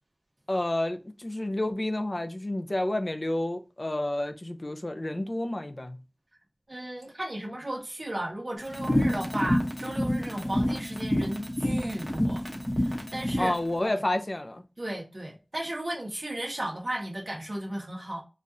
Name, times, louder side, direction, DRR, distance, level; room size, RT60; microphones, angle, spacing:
voice 1, 0.5-6.0 13.4-14.6, left 1 dB, 50° left, 0.5 m, -30 dB
voice 2, 6.7-12.4 12.8-13.5 13.8-14.0 14.8-18.2, right 1 dB, 55° right, 0.9 m, -35 dB
sound 1, 8.7-13.5, left 1 dB, 20° left, 0.9 m, -28 dB
4.0 x 2.4 x 2.6 m
wide cardioid pair, 45°, 0 cm